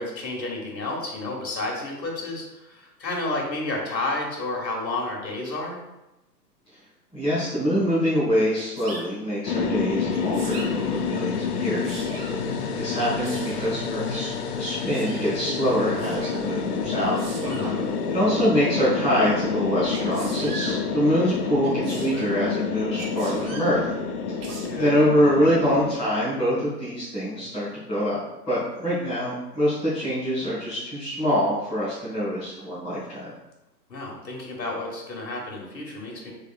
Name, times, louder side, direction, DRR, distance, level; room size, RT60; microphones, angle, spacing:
voice 1, 0.0-5.8 17.4-17.9 24.5-24.9 33.9-36.3, left 2 dB, 85° left, -2 dB, 1.3 m, -31 dB
voice 2, 7.1-12.1 12.8-14.3 14.6-17.1 18.1-23.8 24.3-24.4 24.7-28.2 28.5-33.3, equal, 5° left, -19 dB, 0.4 m, -25 dB
Sneeze, 8.5-9.0 10.1-10.7 11.6-12.4 13.2-13.7 14.7-15.2 16.0-16.4 17.1-17.7 19.9-20.8 21.6-22.4 22.9-23.7 24.4-24.7, right 3 dB, 35° right, 0.8 m, -39 dB
sound 1, 9.5-26.0, left 5 dB, 65° left, 0.5 m, -28 dB
3.4 x 3.3 x 2.4 m, 0.97 s
figure-of-eight pair, 120°, 50 cm